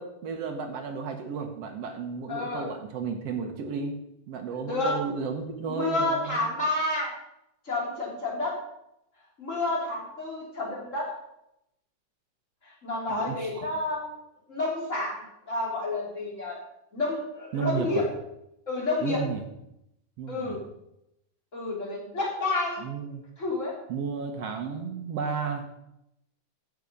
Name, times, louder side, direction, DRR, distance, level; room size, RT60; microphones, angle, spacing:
voice 1, 0.0-3.9 4.3-6.5 13.1-13.7 17.5-18.0 19.0-19.4 20.2-20.6 22.8-23.2 23.9-25.7, right 5 dB, 60° right, 5 dB, 1.9 m, -33 dB
voice 2, 2.3-2.7 4.6-5.0 5.7-7.1 7.6-8.6 9.4-11.1 12.6-14.2 14.5-16.6 16.9-18.1 18.7-19.2 20.3-20.6 21.5-22.8 23.4-23.7, left 2 dB, 25° left, -5 dB, 3.4 m, -30 dB
15.0 x 6.2 x 5.4 m, 0.83 s
omnidirectional pair, 3.7 m